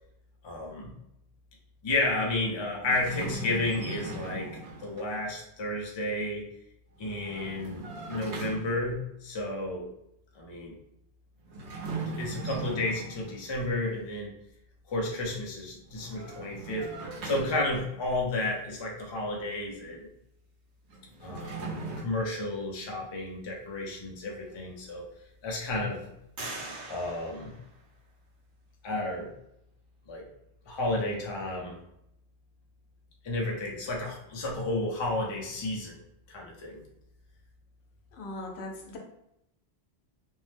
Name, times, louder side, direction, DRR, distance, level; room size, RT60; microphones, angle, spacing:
voice 1, 0.4-0.9 1.8-4.5 4.8-6.4 7.0-9.8 10.3-10.7 12.2-14.3 14.9-16.9 17.2-20.1 21.2-25.0 25.4-26.0 26.9-27.6 28.8-29.3 30.1-30.2 30.7-31.8 33.2-36.0 36.3-36.8, left 2 dB, 35° left, -1 dB, 0.4 m, -32 dB
sound 1, 2.8-5.1 7.0-9.0 11.4-13.5 15.9-18.0 20.9-22.0, right 3 dB, 80° right, 1.0 m, -39 dB
sound 2, 24.1-24.2 24.8-25.4 26.4-28.3, right 2 dB, 50° right, 0.9 m, -43 dB
voice 2, 38.1-39.0, left 2 dB, 80° left, 1 dB, 0.9 m, -39 dB
2.6 x 2.0 x 3.2 m, 0.80 s
omnidirectional pair, 1.1 m